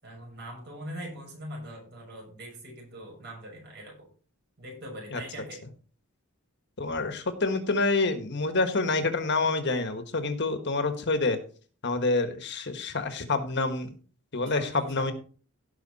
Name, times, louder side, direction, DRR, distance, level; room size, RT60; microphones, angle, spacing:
voice 1, 0.0-4.1 4.6-5.6 14.4-15.1, equal, 50° right, -1 dB, 6.4 m, -42 dB
voice 2, 6.8-11.4 11.8-13.9 14.3-15.1, left 3 dB, 50° left, 8 dB, 1.4 m, -27 dB
17.0 x 5.9 x 4.1 m, 0.40 s
head